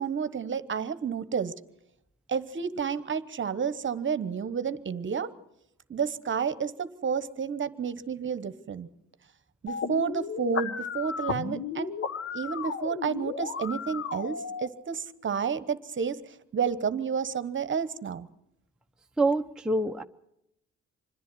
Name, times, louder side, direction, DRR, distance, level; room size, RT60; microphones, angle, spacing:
voice 1, 0.0-1.5 2.3-5.3 5.9-8.9 9.6-11.9 12.3-18.3, right 6 dB, 40° right, 14 dB, 1.1 m, -31 dB
sound 1, 9.7-14.7, left 6 dB, 50° left, 1.1 m, -34 dB
voice 2, 19.2-20.0, right 2 dB, ahead, 4 dB, 0.7 m, -26 dB
26.0 x 10.5 x 9.7 m, 0.80 s
cardioid pair, 90°, 30 cm